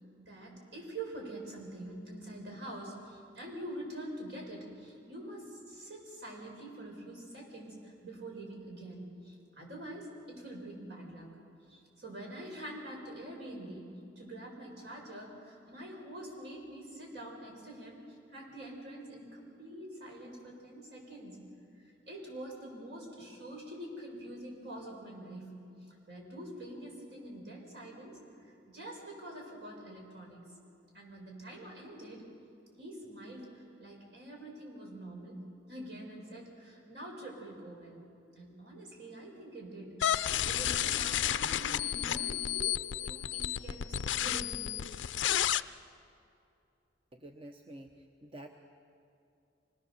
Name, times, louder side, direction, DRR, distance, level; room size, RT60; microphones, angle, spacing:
voice 1, 0.2-11.3 11.7-13.9 14.2-18.0 18.3-21.4 21.8-25.6 25.9-30.4 30.9-32.2 32.8-35.4 35.7-38.0 38.4-44.8, right 1 dB, 65° right, 0 dB, 6.0 m, -45 dB
sound 1, 40.0-45.6, left 11 dB, 80° left, 0.5 m, -31 dB
voice 2, 47.1-48.5, right 1 dB, 30° right, 3 dB, 0.9 m, -49 dB
25.5 x 20.5 x 7.0 m, 2.7 s
head